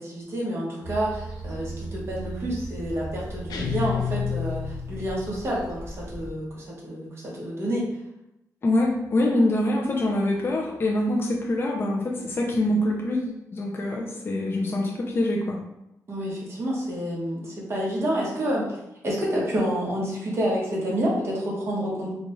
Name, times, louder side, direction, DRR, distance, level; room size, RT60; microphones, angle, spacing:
voice 1, 0.0-7.8 16.1-18.8 19.0-22.1, equal, 45° right, -5 dB, 1.3 m, -28 dB
sound 1, 0.8-6.3, right 1 dB, 10° right, 1.2 m, -37 dB
sound 2, 3.5-5.2, left 8 dB, 85° left, 0.5 m, -29 dB
voice 2, 8.6-15.6, left 1 dB, 35° left, -2 dB, 0.5 m, -25 dB
3.8 x 2.4 x 3.1 m, 0.86 s
wide cardioid pair, 115°, 6 cm